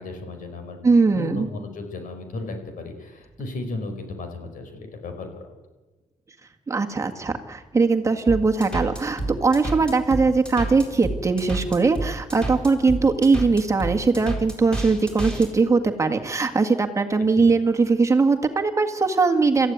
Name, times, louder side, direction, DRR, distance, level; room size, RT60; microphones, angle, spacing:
voice 1, 0.0-0.8 1.1-5.6 17.2-17.5, left 2 dB, 75° left, 6 dB, 4.8 m, -35 dB
voice 2, 0.8-1.5 6.7-19.7, right 4 dB, 20° right, 4 dB, 1.7 m, -20 dB
sound 1, 8.3-15.5, right 2 dB, 5° left, 4.4 m, -29 dB
26.5 x 14.5 x 9.6 m, 1.2 s
cardioid pair, 135°, 14 cm